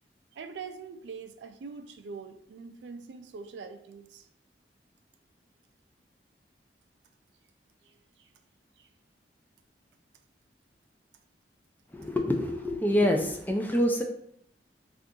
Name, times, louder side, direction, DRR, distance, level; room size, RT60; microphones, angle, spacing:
voice 1, 0.3-4.3 7.8-8.3 8.8-8.9, right 5 dB, 75° right, 8 dB, 0.3 m, -44 dB
voice 2, 11.9-14.0, left 1 dB, 10° left, 2 dB, 0.3 m, -26 dB
2.7 x 2.4 x 3.6 m, 0.69 s
head